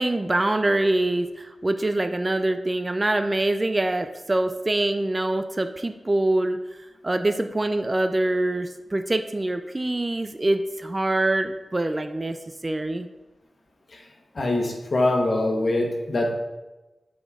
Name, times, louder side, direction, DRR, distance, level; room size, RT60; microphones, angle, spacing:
voice 1, 0.0-6.6 7.0-12.4 12.6-13.1, right 2 dB, 25° right, 8 dB, 0.3 m, -24 dB
voice 2, 14.3-16.3, left 2 dB, 55° left, 1 dB, 1.2 m, -23 dB
8.3 x 4.2 x 3.6 m, 1.1 s
wide cardioid pair, 75°, 0 cm